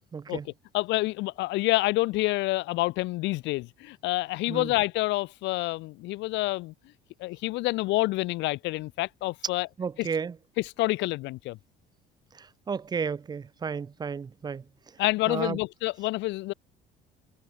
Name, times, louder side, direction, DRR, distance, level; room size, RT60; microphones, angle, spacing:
voice 1, 0.1-0.5 4.5-4.7 9.8-10.3 12.4-14.6 15.3-15.6, right 6 dB, 20° right, 2.7 m, -33 dB
voice 2, 0.7-6.7 7.2-9.7 10.0-10.1 10.6-11.6 15.0-16.5, left 20 dB, 75° left, 3.2 m, -28 dB
cardioid pair, 170°, 19 cm